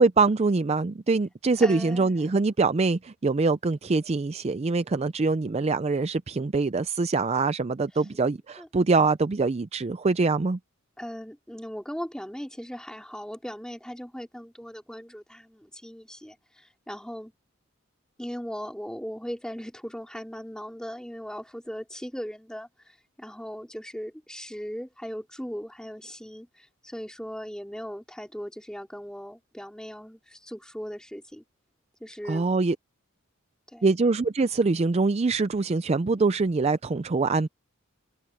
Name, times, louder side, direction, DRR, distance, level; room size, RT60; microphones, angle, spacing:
voice 1, 0.0-10.6 32.3-32.8 33.8-37.5, right 3 dB, 30° right, 0.4 m, -24 dB
voice 2, 1.6-2.1 8.6-8.7 11.0-17.3 18.2-31.4 32.0-32.5 33.7-33.9, equal, 5° left, 3.6 m, -38 dB
head